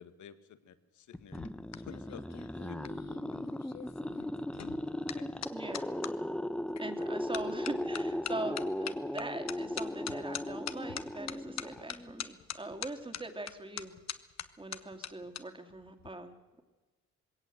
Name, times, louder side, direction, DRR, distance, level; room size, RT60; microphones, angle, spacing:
voice 1, 0.0-1.5 1.8-2.8 5.0-5.3, left 8 dB, 75° left, 12 dB, 1.7 m, -52 dB
sound 1, 1.1-6.1 6.8-7.0 7.3-15.4 15.7-16.1, left 10 dB, 60° left, 1.3 m, -43 dB
sound 2, 1.1-12.3, left 1 dB, 5° left, 0.9 m, -37 dB
voice 2, 5.5-5.8 6.8-13.9 14.6-16.6, right 2 dB, 15° right, 7 dB, 2.6 m, -42 dB
21.0 x 17.5 x 7.9 m, 1.2 s
cardioid pair, 90°, 30 cm